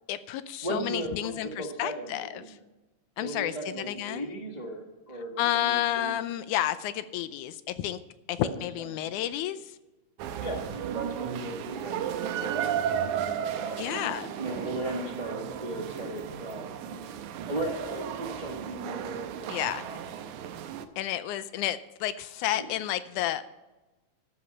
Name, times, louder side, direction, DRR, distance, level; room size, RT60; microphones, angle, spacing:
voice 1, 0.1-2.6 3.2-4.4 5.4-8.0 8.3-9.8 13.8-14.3 19.5-19.9 21.0-23.5, left 12 dB, 80° left, 13 dB, 2.0 m, -31 dB
voice 2, 0.6-2.6 3.2-6.2 8.4-8.6 10.4-14.0 14.4-17.0 17.5-20.1 22.5-22.7, right 1 dB, 40° right, 0 dB, 0.6 m, -37 dB
sound 1, 10.2-20.9, right 9 dB, 80° right, 2.1 m, -34 dB
13.0 x 8.1 x 5.5 m, 1.1 s
omnidirectional pair, 3.6 m